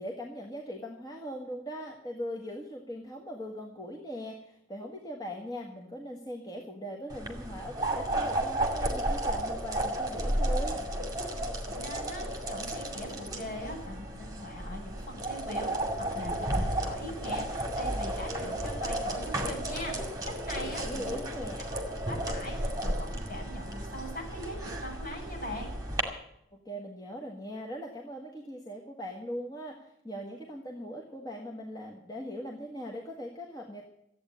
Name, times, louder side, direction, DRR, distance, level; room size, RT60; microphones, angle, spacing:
voice 1, 0.0-10.8 20.8-21.6 26.6-33.8, equal, 20° left, 0 dB, 1.5 m, -40 dB
sound 1, 7.1-26.0, right 1 dB, 20° right, 2.3 m, -33 dB
voice 2, 11.7-21.1 22.1-25.7, equal, 45° left, -2 dB, 6.9 m, -41 dB
14.5 x 8.8 x 8.6 m, 0.77 s
head